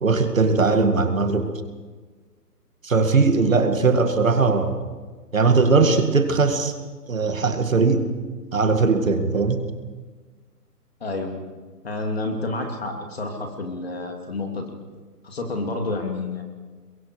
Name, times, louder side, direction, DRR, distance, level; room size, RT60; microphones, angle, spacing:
voice 1, 0.0-1.5 2.8-4.7 5.3-6.7 7.1-8.1 8.5-9.6, right 4 dB, 55° right, 6 dB, 2.2 m, -19 dB
voice 2, 11.0-11.3 11.8-14.6 15.2-16.4, left 2 dB, 40° left, 2 dB, 3.0 m, -29 dB
28.0 x 22.5 x 4.8 m, 1.4 s
hypercardioid pair, 180°, 48 cm